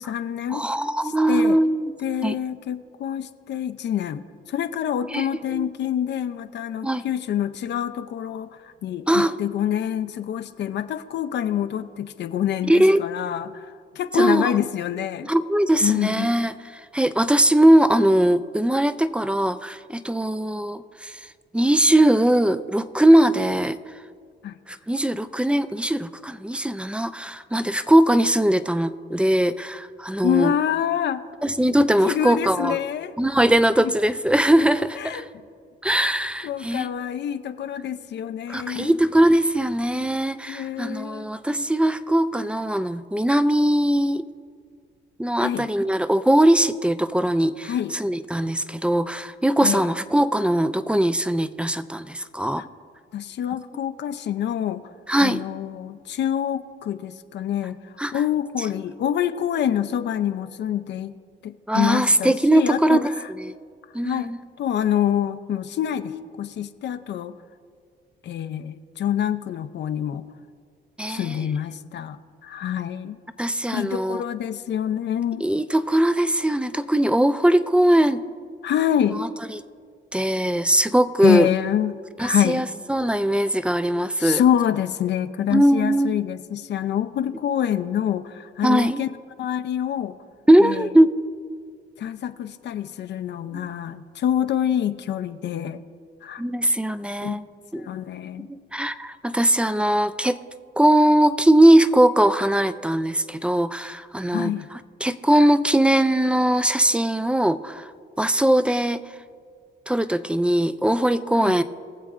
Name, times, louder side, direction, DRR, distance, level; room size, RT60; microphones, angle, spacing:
voice 1, 0.0-0.6 1.0-1.6 2.0-13.7 14.0-15.3 15.8-16.3 24.4-24.6 30.2-31.2 32.0-33.1 33.8-33.9 35.0-35.2 36.4-38.9 40.5-41.3 45.4-45.7 47.7-47.9 49.6-49.9 52.6-52.7 53.1-54.9 55.2-57.8 58.1-61.2 61.4-63.0 64.0-67.4 68.2-70.2 71.1-73.1 73.7-75.4 78.6-79.2 81.2-82.7 84.2-89.1 89.4-90.2 90.6-90.9 92.0-95.8 96.2-96.4 97.2-97.4 97.7-98.5 104.3-104.7 111.4-111.5, left 10 dB, 60° left, 11 dB, 0.5 m, -26 dB
voice 2, 0.5-1.9 2.2-2.4 5.1-5.7 6.8-7.0 9.1-9.4 12.7-13.0 14.1-14.6 15.3-21.2 21.5-23.8 24.7-30.5 31.4-32.8 33.2-35.3 35.8-36.9 38.5-44.3 45.2-52.6 55.1-55.4 58.0-58.1 61.7-63.1 63.4-63.5 63.9-64.4 71.0-71.4 73.4-74.2 75.4-78.2 79.1-79.6 80.1-81.5 82.2-84.4 85.5-86.2 88.6-89.0 90.5-91.1 96.4-97.4 97.7-97.9 98.4-100.4 100.8-107.9 108.2-109.0 109.9-111.6, right 1 dB, 5° right, 13 dB, 0.3 m, -20 dB
21.5 x 7.4 x 2.5 m, 2.2 s
cardioid pair, 90°, 20 cm